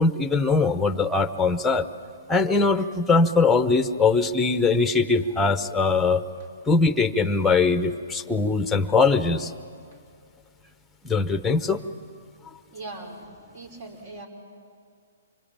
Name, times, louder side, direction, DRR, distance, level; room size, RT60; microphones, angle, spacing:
voice 1, 0.0-1.9 2.3-6.2 6.7-9.5 11.0-11.8, left 4 dB, 5° left, 11 dB, 1.0 m, -21 dB
voice 2, 12.7-13.2 13.5-14.3, right 2 dB, 50° right, 3 dB, 5.7 m, -39 dB
26.0 x 23.0 x 8.9 m, 2.2 s
hypercardioid pair, 140°, 0 cm